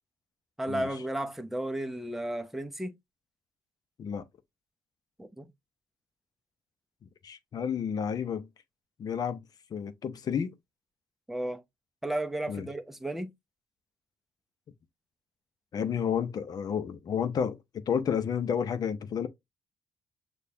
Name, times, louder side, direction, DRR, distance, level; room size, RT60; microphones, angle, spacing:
voice 1, 0.6-2.9 5.2-5.5 11.3-11.6 12.0-13.3, right 1 dB, 5° right, 0.7 m, -33 dB
voice 2, 7.2-8.5 9.0-9.4 9.7-10.5 12.5-12.7 15.7-19.3, left 7 dB, 60° left, 0.7 m, -31 dB
6.6 x 2.4 x 2.7 m
supercardioid pair, 65°, 8 cm